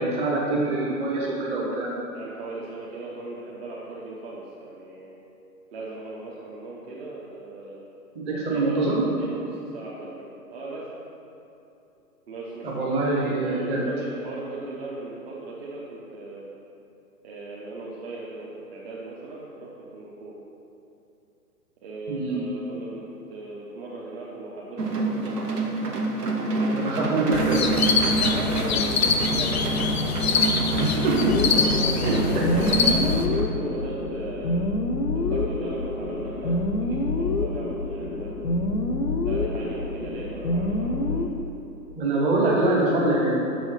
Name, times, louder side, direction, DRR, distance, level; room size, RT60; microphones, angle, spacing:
voice 1, 0.0-1.9 8.1-9.1 12.6-13.9 22.1-22.4 26.7-27.6 30.8-31.4 32.0-32.4 42.0-43.4, right 2 dB, 15° right, -4 dB, 0.9 m, -24 dB
voice 2, 2.1-5.2 5.7-7.8 8.3-8.9 9.2-10.9 12.3-16.5 17.2-20.4 21.8-26.1 26.6-26.8 28.3-29.8 30.2-30.3 30.6-30.8 31.3-34.7 35.1-38.6 39.2-41.3, right 2 dB, 40° right, -6 dB, 1.1 m, -38 dB
sound 1, 24.8-33.4, right 2 dB, 70° right, 1.3 m, -27 dB
sound 2, 27.3-33.3, left 4 dB, 40° left, 0.6 m, -24 dB
sound 3, 31.3-41.3, left 2 dB, 75° left, 0.8 m, -27 dB
6.3 x 6.2 x 5.6 m, 2.8 s
figure-of-eight pair, 125°, 48 cm